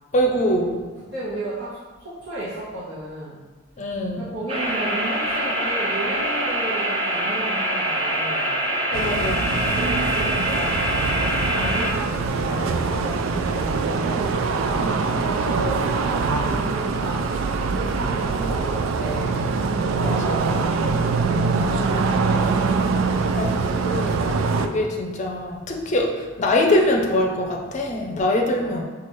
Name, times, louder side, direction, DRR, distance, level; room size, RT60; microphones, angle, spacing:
voice 1, 0.1-0.8 3.8-4.3 8.9-9.5 14.8-15.1 20.0-20.4 20.6-20.7 23.4-28.8, left 1 dB, 35° left, 0 dB, 0.5 m, -23 dB
voice 2, 0.8-3.4 4.1-8.5 9.5-10.7 11.2-14.3 14.8-19.4 20.3-22.4 28.6-28.8, right 1 dB, 65° right, -11 dB, 1.0 m, -33 dB
sound 1, 4.5-11.9, right 1 dB, 30° right, 0.6 m, -24 dB
sound 2, 8.9-24.7, right 4 dB, 85° right, 0.3 m, -23 dB
5.9 x 2.4 x 3.1 m, 1.4 s
head